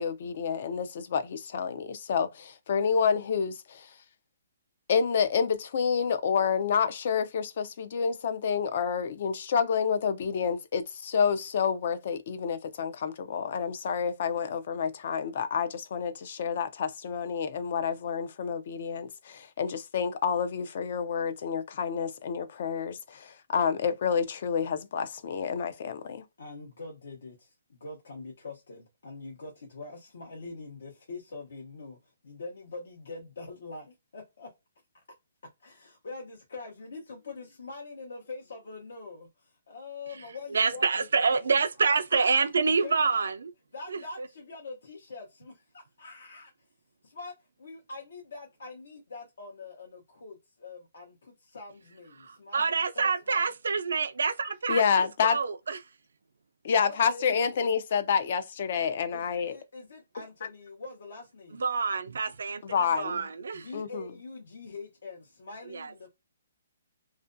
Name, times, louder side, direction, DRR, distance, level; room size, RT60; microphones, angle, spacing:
voice 1, 0.0-3.9 4.9-26.2 54.7-55.4 56.6-59.6 62.6-63.2 63.7-64.1, left 6 dB, 45° left, 0.4 m, -29 dB
voice 2, 26.4-32.0 32.2-34.5 35.6-42.3 42.8-43.3 43.7-46.5 47.0-52.6 52.9-53.5 56.8-57.3 59.1-61.7 63.5-66.1, left 3 dB, 70° left, 0.8 m, -44 dB
voice 3, 40.5-43.5 52.3-55.8 61.6-63.7 65.7-65.9, right 5 dB, 80° right, 0.3 m, -27 dB
2.4 x 2.1 x 2.5 m
hypercardioid pair, 165°, 0 cm